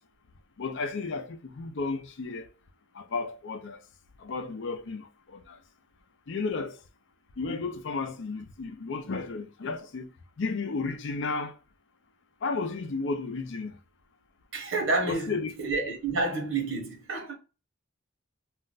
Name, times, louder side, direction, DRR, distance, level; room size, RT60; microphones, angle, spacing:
voice 1, 0.6-2.5 2.9-3.8 4.2-5.6 6.3-6.8 7.4-11.6 12.4-13.7 15.1-15.5, left 4 dB, 65° left, 0.5 m, -33 dB
voice 2, 14.5-17.3, right 3 dB, 75° right, 0.9 m, -29 dB
2.5 x 2.2 x 3.8 m
head